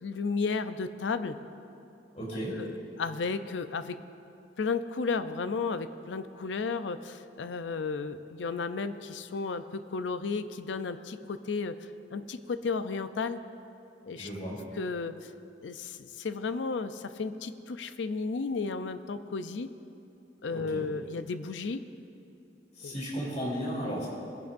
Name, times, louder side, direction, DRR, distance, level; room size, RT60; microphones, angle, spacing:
voice 1, 0.0-1.4 2.5-4.0 4.6-13.4 14.0-14.3 14.8-15.3 15.6-19.7 20.4-21.8 22.8-22.9, left 4 dB, 80° left, 11 dB, 0.5 m, -33 dB
voice 2, 2.1-2.5 14.1-14.6 20.5-20.8 22.8-24.1, equal, 40° left, -6 dB, 3.1 m, -34 dB
20.5 x 10.5 x 2.6 m, 2.7 s
head